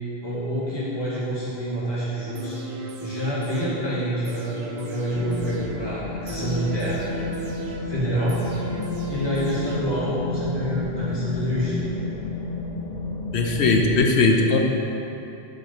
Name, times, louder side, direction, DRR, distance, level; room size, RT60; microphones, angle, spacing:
voice 1, 0.2-2.6 3.0-7.0 7.9-8.4 9.1-11.8, equal, 25° left, -10 dB, 2.0 m, -27 dB
sound 1, 2.4-10.3 10.7-10.8, right 2 dB, 80° right, 1.1 m, -37 dB
sound 2, 5.1-14.1, left 2 dB, 50° left, 0.7 m, -31 dB
voice 2, 13.3-14.6, left 3 dB, 90° left, 2 dB, 1.0 m, -19 dB
7.2 x 4.9 x 5.8 m, 2.9 s
omnidirectional pair, 1.1 m